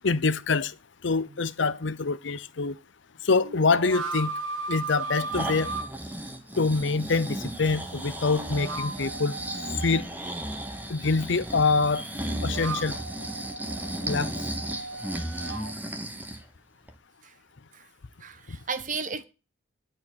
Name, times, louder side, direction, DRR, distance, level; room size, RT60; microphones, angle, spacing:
voice 1, 0.0-0.7 1.0-2.8 3.2-4.3 4.7-5.7 6.6-9.4 9.8-10.1 10.9-12.0 12.4-13.0 14.0-14.3, left 4 dB, 60° left, 0.6 m, -25 dB
sound 1, 1.3-1.4 3.4-5.9 8.2-10.1 12.1-15.7, right 3 dB, 70° right, 1.5 m, -36 dB
Breathing, 5.0-16.4 16.9-17.0, right 1 dB, 10° right, 0.9 m, -35 dB
voice 2, 18.2-19.2, right 5 dB, 40° right, 1.0 m, -34 dB
11.0 x 4.6 x 7.8 m
head